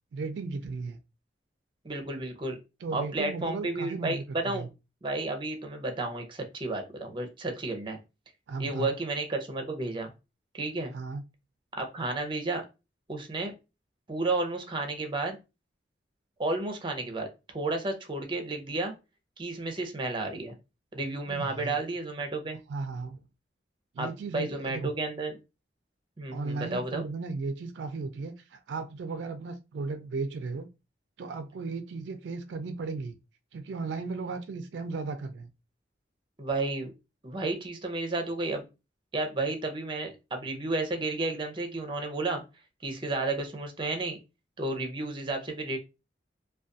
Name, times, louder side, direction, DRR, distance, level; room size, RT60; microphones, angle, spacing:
voice 1, 0.1-1.0 2.8-4.7 8.5-9.0 10.9-11.2 21.3-21.8 22.7-23.2 23.9-24.9 26.3-30.7 31.2-33.1 33.5-35.5, right 4 dB, 75° right, 0.3 m, -35 dB
voice 2, 1.8-2.6 2.9-4.7 5.0-8.0 8.6-10.1 10.5-10.9 11.8-12.6 13.1-13.5 14.1-15.4 16.4-18.9 19.4-20.5 20.9-22.6 24.0-25.4 26.2-27.0 36.4-36.9 37.2-38.6 39.1-42.4 42.8-44.2 44.6-45.8, right 2 dB, 25° right, 0.5 m, -32 dB
2.4 x 2.2 x 2.5 m
head